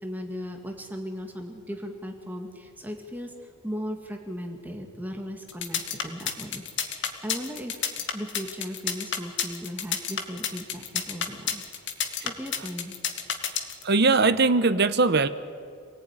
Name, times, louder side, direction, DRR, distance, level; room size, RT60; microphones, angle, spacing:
voice 1, 0.0-3.3 3.6-7.8 8.1-12.0 12.2-13.0, equal, 10° right, 3 dB, 1.8 m, -37 dB
sound 1, 5.5-13.8, left 8 dB, 55° left, 2.0 m, -29 dB
voice 2, 13.8-15.3, right 3 dB, 50° right, 12 dB, 1.0 m, -20 dB
27.5 x 19.0 x 9.7 m, 2.3 s
head